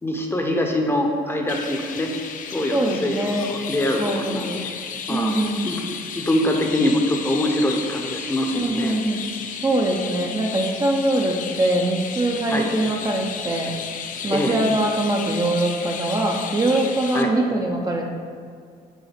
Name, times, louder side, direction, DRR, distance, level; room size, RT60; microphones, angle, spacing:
voice 1, 0.0-2.1 2.5-4.7 5.1-5.3 5.6-5.8 6.1-9.0 12.5-12.7 14.3-14.6 17.1-17.3, left 1 dB, 15° left, 2 dB, 0.8 m, -24 dB
Chirp tweet, 1.5-17.2, left 6 dB, 50° left, 0.6 m, -33 dB
voice 2, 2.7-3.5 4.0-4.6 5.1-5.7 8.5-9.3 9.6-13.7 14.2-18.0, right 1 dB, 20° right, 0 dB, 0.6 m, -23 dB
5.4 x 4.0 x 5.8 m, 2.2 s
cardioid pair, 110°, 17 cm